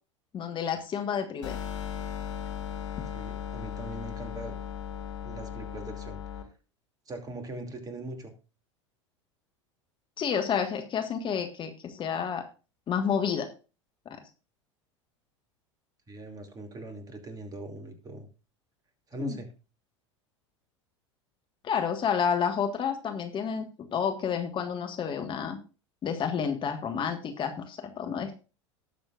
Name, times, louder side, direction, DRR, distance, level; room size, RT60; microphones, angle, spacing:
voice 1, 0.3-1.6 10.2-12.4 12.9-13.5 14.0-14.2 19.2-19.4 21.6-23.6 23.9-25.6 26.0-28.4, left 7 dB, 30° left, 6 dB, 1.6 m, -30 dB
sound 1, 1.4-6.4, left 8 dB, 70° left, 1.9 m, -37 dB
voice 2, 3.1-4.6 5.2-6.4 7.1-8.3 16.1-18.3 19.1-19.5, right 2 dB, 25° right, 5 dB, 2.6 m, -41 dB
18.5 x 7.0 x 2.5 m, 0.32 s
figure-of-eight pair, 85°, 16 cm